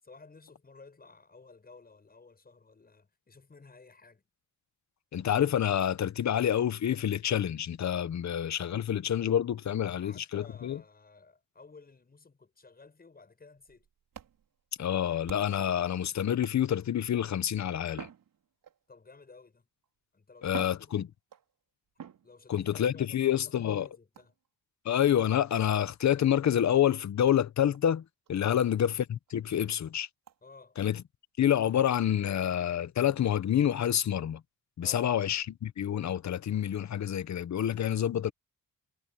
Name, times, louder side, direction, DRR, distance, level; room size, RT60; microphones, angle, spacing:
voice 1, 0.0-4.2 9.8-13.9 18.9-19.7 20.1-21.1 22.2-24.4 30.4-30.8 34.8-35.1, left 4 dB, 25° left, 7.8 m, -54 dB
voice 2, 5.1-10.8 14.8-18.1 20.4-21.1 22.5-23.9 24.8-28.0 28.3-30.1 30.8-31.0 31.4-34.4 34.8-38.3, left 10 dB, 55° left, 0.9 m, -28 dB
sound 1, 13.6-15.7 16.4-17.0 17.9-19.0 19.8-19.9 20.4-21.5 22.0-22.7 24.1-24.5 25.6-25.7 26.4-26.5 26.8-26.9 27.3-27.4 27.7-27.8 28.3-28.4 28.8-28.9 29.3-29.4 30.3-30.4, right 9 dB, 80° right, 4.9 m, -48 dB
wide cardioid pair, 155°, 33 cm